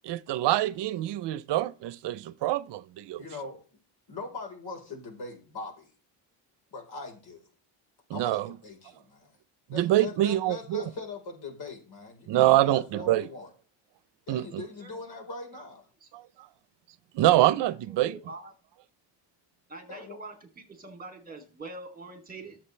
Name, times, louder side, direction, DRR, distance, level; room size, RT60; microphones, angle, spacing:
voice 1, 0.0-3.2 8.1-8.5 9.7-10.8 12.3-13.3 14.3-14.6 16.1-16.2 17.1-18.1, right 15 dB, 70° right, 0.8 m, -25 dB
voice 2, 3.2-3.6 4.1-5.9 6.7-7.5 8.1-9.4 9.7-13.5 14.3-15.9 19.9-20.2, left 3 dB, 60° left, 4.3 m, -41 dB
voice 3, 17.6-18.5 19.7-22.6, right 2 dB, 20° right, 3.0 m, -44 dB
21.5 x 7.6 x 3.3 m
cardioid pair, 120°, 43 cm